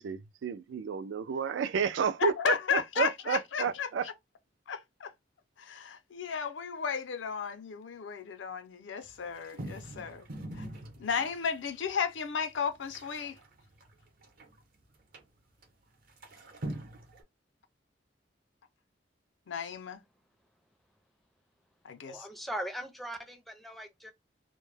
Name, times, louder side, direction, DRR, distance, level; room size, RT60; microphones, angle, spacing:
voice 1, 0.0-4.1, right 6 dB, 75° right, 0.3 m, -31 dB
voice 2, 2.2-4.1 4.7-5.1 5.6-10.2 10.5-10.7 11.0-13.4 19.5-20.0 21.8-22.3, left 6 dB, 85° left, 0.5 m, -34 dB
sound 1, 9.0-11.6 12.1-12.2 12.4-14.6 15.1-15.2 15.6-15.7 16.1-17.2, right 1 dB, 55° right, 0.7 m, -43 dB
voice 3, 22.1-24.1, right 1 dB, ahead, 0.4 m, -39 dB
2.1 x 2.0 x 3.2 m
head